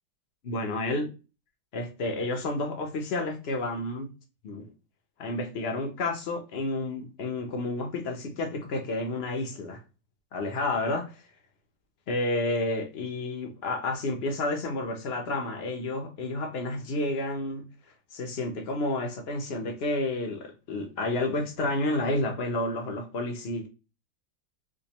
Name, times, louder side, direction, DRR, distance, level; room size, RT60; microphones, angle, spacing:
voice 1, 0.4-1.1 1.7-4.1 4.4-4.7 5.2-9.8 10.3-11.2 12.1-17.6 18.1-23.7, left 2 dB, 60° left, 0.6 m, -30 dB
5.0 x 2.2 x 2.9 m
omnidirectional pair, 2.0 m